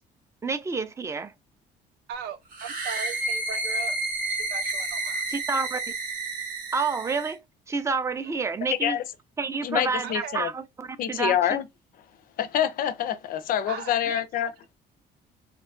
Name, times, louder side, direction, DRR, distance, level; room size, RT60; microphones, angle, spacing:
voice 1, 0.4-1.3 5.3-5.8 6.7-7.4 7.7-9.0 9.4-11.4, right 4 dB, 15° right, 0.3 m, -29 dB
voice 2, 2.1-4.0 4.3-5.3 10.0-10.4 13.7-14.2, right 7 dB, 80° right, 0.5 m, -38 dB
sound 1, 2.5-7.3, right 2 dB, 60° right, 1.0 m, -30 dB
voice 3, 9.6-10.5 11.0-11.7 12.4-14.5, left 10 dB, 55° left, 0.4 m, -26 dB
2.8 x 2.3 x 2.3 m
cardioid pair, 110°, 17 cm